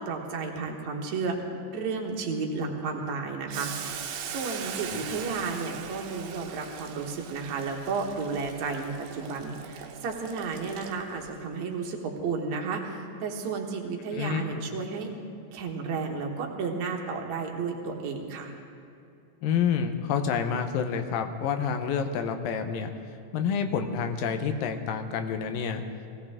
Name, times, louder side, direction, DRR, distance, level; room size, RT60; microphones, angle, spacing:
voice 1, 0.0-15.1 15.5-18.5, right 4 dB, 60° right, 1 dB, 2.5 m, -32 dB
Boiling, 3.5-11.3, right 8 dB, 80° right, 2.6 m, -40 dB
voice 2, 14.1-14.6 19.4-22.9 23.3-25.8, left 7 dB, 80° left, 6 dB, 2.6 m, -28 dB
20.5 x 17.0 x 3.6 m, 2.7 s
omnidirectional pair, 4.0 m